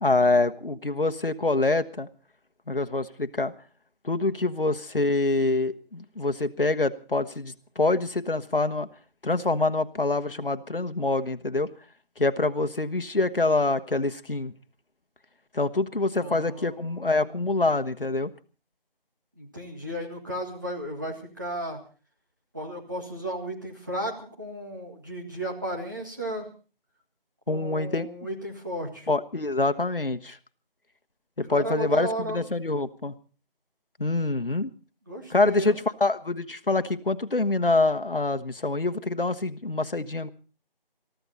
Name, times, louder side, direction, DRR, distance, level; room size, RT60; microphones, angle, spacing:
voice 1, 0.0-2.1 2.7-3.5 4.0-8.9 9.2-11.7 12.2-14.5 15.5-18.3 27.5-28.1 29.1-30.4 31.4-33.1 34.0-34.7 35.3-40.3, left 2 dB, 65° left, 9 dB, 1.2 m, -25 dB
voice 2, 16.2-17.4 19.4-21.8 22.5-26.5 27.5-29.1 31.4-32.4 35.1-35.8, right 1 dB, 20° right, -1 dB, 1.9 m, -34 dB
22.5 x 14.0 x 4.1 m, 0.36 s
figure-of-eight pair, 175°, 29 cm